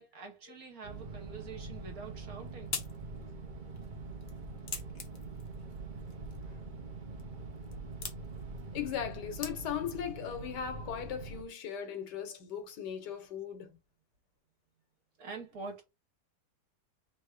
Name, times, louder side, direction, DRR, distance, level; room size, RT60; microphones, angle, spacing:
voice 1, 0.0-2.7 15.2-15.8, right 4 dB, 65° right, 1.7 m, -45 dB
sound 1, 0.8-11.4, right 3 dB, 40° right, 0.8 m, -44 dB
sound 2, 2.0-10.0, left 5 dB, 50° left, 0.9 m, -46 dB
voice 2, 8.7-13.8, left 9 dB, 90° left, 1.5 m, -38 dB
3.6 x 2.7 x 4.7 m
omnidirectional pair, 1.7 m